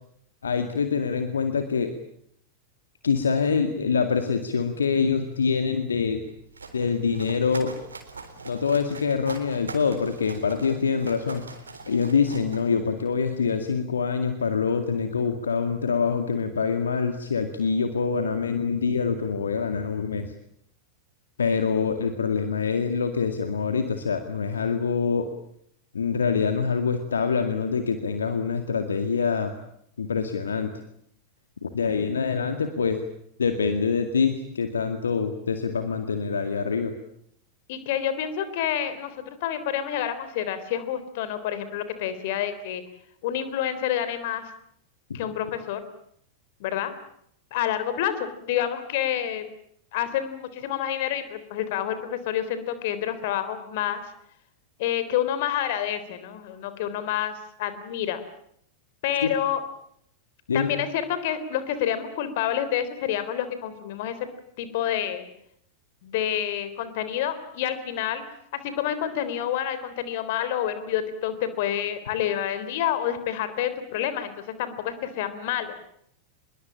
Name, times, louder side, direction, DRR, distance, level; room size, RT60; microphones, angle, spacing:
voice 1, 0.4-1.9 3.0-6.2 6.7-7.7 8.5-11.4 11.9-20.3 21.4-25.3 25.9-29.5 30.0-30.7 31.6-33.0 33.4-36.9 45.1-45.2 59.2-59.3 60.5-60.7, left 5 dB, 70° left, 7 dB, 2.1 m, -25 dB
sound 1, 6.2-13.2, right 4 dB, 75° right, 3.8 m, -43 dB
voice 2, 37.7-42.8 43.2-44.5 45.1-45.8 46.6-46.9 47.5-49.4 49.9-54.0 54.8-58.2 59.0-59.6 60.5-64.2 64.6-65.3 66.0-68.2 68.6-75.7, left 10 dB, 50° left, 12 dB, 3.6 m, -28 dB
25.5 x 22.0 x 8.8 m, 0.70 s
figure-of-eight pair, 90°, 0 cm